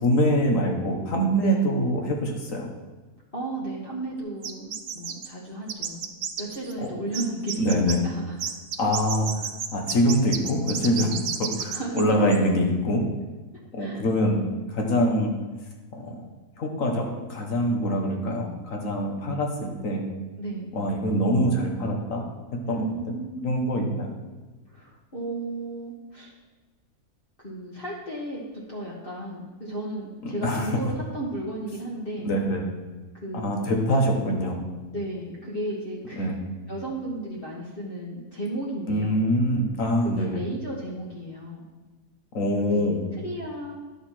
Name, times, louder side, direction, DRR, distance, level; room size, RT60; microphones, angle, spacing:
voice 1, 0.0-2.7 6.8-6.9 7.6-8.0 8.8-9.3 9.7-13.0 13.7-14.4 14.7-15.3 15.9-16.2 16.6-20.0 20.7-22.2 22.7-22.9 23.4-24.1 30.2-30.7 32.2-32.6 33.3-34.6 36.2-36.3 38.9-40.4 42.3-43.0, equal, 60° left, 2 dB, 1.7 m, -24 dB
voice 2, 3.3-6.0 6.4-8.4 11.7-12.0 13.8-14.0 20.4-20.7 22.6-23.5 24.6-26.3 27.4-32.3 33.1-33.7 34.9-36.4 36.7-39.2 40.0-41.6 42.6-43.8, right 1 dB, 35° left, -5 dB, 1.6 m, -34 dB
sound 1, 4.4-5.3 5.7-6.9 7.1-8.0 8.4-12.0 12.3-12.4, right 8 dB, 60° right, 0.8 m, -31 dB
10.0 x 6.6 x 4.4 m, 1.2 s
omnidirectional pair, 1.6 m